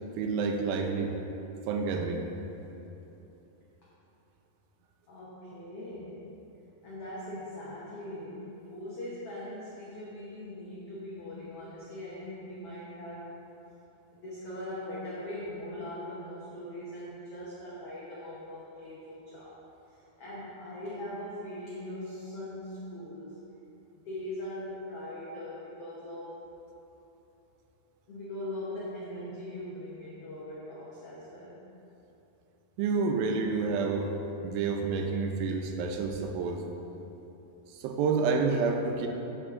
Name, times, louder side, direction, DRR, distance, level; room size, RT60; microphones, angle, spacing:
voice 1, 0.2-1.2 1.7-2.3 32.8-34.1 34.4-36.7 37.7-39.1, right 4 dB, 80° right, 3 dB, 2.4 m, -29 dB
voice 2, 5.1-6.3 6.8-13.4 14.1-19.6 19.9-23.4 23.9-26.4 28.1-31.7, left 1 dB, 75° left, -7 dB, 1.3 m, -41 dB
11.0 x 5.3 x 3.7 m, 3.0 s
omnidirectional pair, 4.2 m